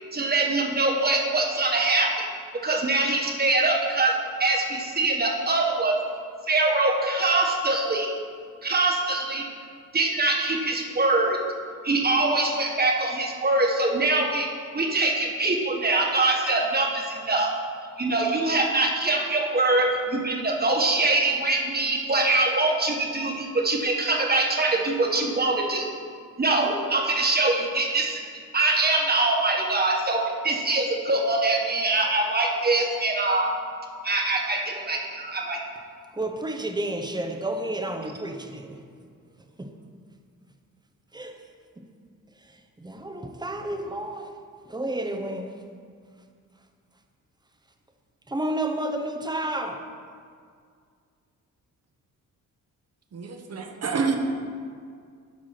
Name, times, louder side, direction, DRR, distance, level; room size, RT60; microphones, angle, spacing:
voice 1, 0.1-2.3 2.6-4.1 4.4-6.0 6.5-8.1 8.6-9.4 9.9-11.4 11.8-14.5 14.7-17.5 18.0-25.9 26.4-28.2 28.5-33.5 34.0-35.6, right 2 dB, 25° right, 0 dB, 1.6 m, -23 dB
voice 2, 36.1-38.8 39.6-39.7 41.1-41.4 41.8-41.9 42.4-44.4 44.7-45.6 48.3-49.8, right 1 dB, 10° right, 5 dB, 0.9 m, -31 dB
voice 3, 53.1-54.2, right 5 dB, 45° right, 4 dB, 1.2 m, -28 dB
11.5 x 4.7 x 5.9 m, 2.1 s
cardioid pair, 95°, 34 cm